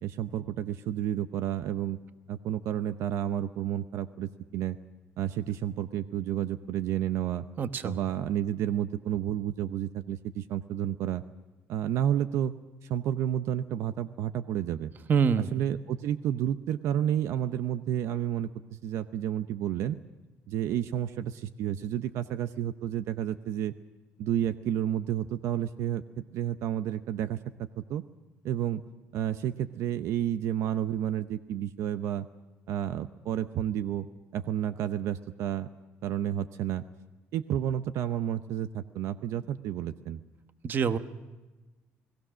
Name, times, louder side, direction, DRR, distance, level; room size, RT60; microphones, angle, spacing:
voice 1, 0.0-2.0 2.3-4.8 5.2-7.5 7.8-11.2 11.7-12.5 12.8-14.9 15.5-20.0 20.5-23.7 24.2-28.0 28.4-28.8 29.1-32.3 32.7-34.1 34.3-35.7 36.0-36.8 37.3-40.2, right 10 dB, 75° right, 11 dB, 0.7 m, -31 dB
voice 2, 7.6-8.0 15.1-15.5 40.6-41.0, right 6 dB, 40° right, 11 dB, 1.0 m, -25 dB
29.5 x 18.5 x 6.3 m, 1.2 s
cardioid pair, 120°, 5 cm